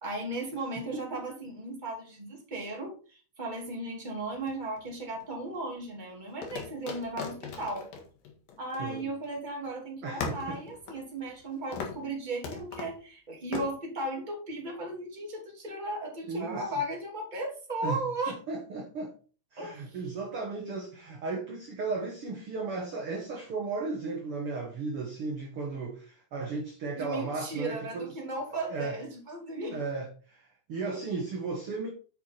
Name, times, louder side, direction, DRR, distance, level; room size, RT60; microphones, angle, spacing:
voice 1, 0.0-7.9 8.6-18.4 19.6-20.0 26.9-29.8, right 2 dB, 15° right, -1 dB, 2.4 m, -36 dB
sound 1, 4.3-5.2 6.4-9.4 9.7-9.8 10.2-11.5 11.7-12.1 12.4-13.0 13.5-13.7, left 5 dB, 75° left, 3.4 m, -39 dB
voice 2, 8.8-9.1 10.0-10.6 16.3-16.7 17.8-18.0 18.3-19.1 19.5-28.1 28.7-29.0 29.7-31.9, right 3 dB, 55° right, 0 dB, 1.7 m, -35 dB
8.5 x 6.0 x 4.5 m, 0.37 s
omnidirectional pair, 4.2 m